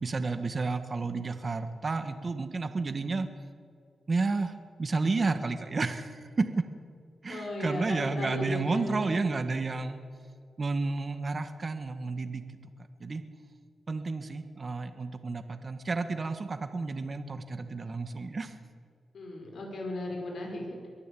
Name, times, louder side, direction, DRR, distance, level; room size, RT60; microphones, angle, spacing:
voice 1, 0.0-3.3 4.1-6.6 7.2-10.0 10.6-12.4 13.0-13.2 13.9-18.5, right 3 dB, 40° right, 8 dB, 1.4 m, -31 dB
voice 2, 7.3-9.1 19.1-20.9, left 1 dB, 70° left, 1 dB, 5.3 m, -36 dB
23.0 x 13.5 x 8.5 m, 2.3 s
cardioid pair, 85°, 0 cm